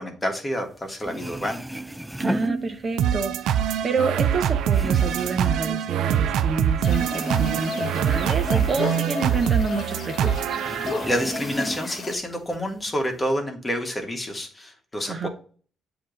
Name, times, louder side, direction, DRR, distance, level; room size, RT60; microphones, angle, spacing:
voice 1, 0.0-1.6 11.0-15.3, equal, 20° left, 3 dB, 1.5 m, -28 dB
sound 1, 0.7-0.8 1.0-3.2 3.6-6.5 6.8-9.8 10.1-10.2 10.6-12.1 12.5-13.3, right 1 dB, 5° right, 0.3 m, -34 dB
voice 2, 2.2-10.6 15.1-15.3, right 4 dB, 40° right, 6 dB, 0.9 m, -28 dB
sound 2, 3.0-11.2, right 9 dB, 85° right, 0.4 m, -24 dB
sound 3, 6.8-12.2, left 4 dB, 55° left, 1.1 m, -34 dB
7.6 x 3.0 x 5.1 m, 0.42 s
cardioid pair, 90°, 0 cm